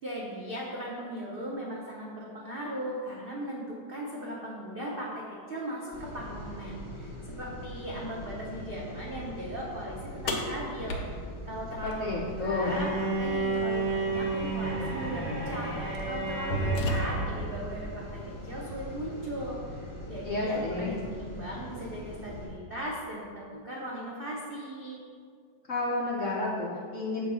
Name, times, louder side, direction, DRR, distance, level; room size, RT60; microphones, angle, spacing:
voice 1, 0.0-11.2 11.5-25.0, right 1 dB, 75° right, -4 dB, 0.5 m, -38 dB
sound 1, 5.9-22.5, left 1 dB, 15° left, 1.7 m, -42 dB
sound 2, 10.3-12.4 14.3-14.4 15.3-15.5 15.9-17.4, equal, 80° left, 1.6 m, -32 dB
voice 2, 11.8-12.8 20.2-20.9 25.7-27.2, left 2 dB, 60° left, -4 dB, 0.8 m, -31 dB
Bowed string instrument, 12.6-17.5, right 3 dB, 40° right, 1.9 m, -32 dB
6.9 x 3.7 x 5.3 m, 2.1 s
omnidirectional pair, 2.2 m